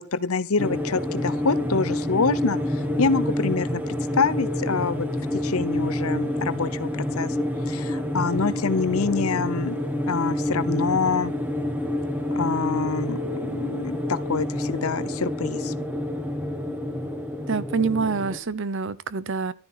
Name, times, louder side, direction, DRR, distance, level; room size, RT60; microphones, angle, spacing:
voice 1, 0.0-2.6 3.0-5.1 5.3-7.3 7.7-9.8 10.1-11.3 12.3-15.7, left 4 dB, 75° left, 0.9 m, -26 dB
sound 1, 0.6-18.4, left 1 dB, 10° right, 1.8 m, -28 dB
voice 2, 17.5-19.5, right 4 dB, 60° right, 0.8 m, -26 dB
12.5 x 10.5 x 5.8 m
head